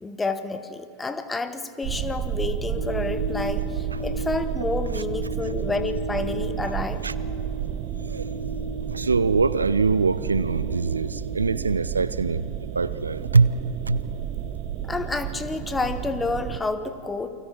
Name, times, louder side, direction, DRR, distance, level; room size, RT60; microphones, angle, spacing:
voice 1, 0.0-7.0 14.8-17.3, left 3 dB, 10° left, 1.2 m, -29 dB
sound 1, 1.8-16.6, right 9 dB, 40° right, 0.9 m, -31 dB
sound 2, 2.7-11.9, equal, 40° left, 5.0 m, -36 dB
voice 2, 8.9-12.5 12.7-13.5 13.9-14.0, right 4 dB, 75° right, 0.5 m, -23 dB
29.0 x 24.5 x 4.5 m
figure-of-eight pair, 90°, 0 cm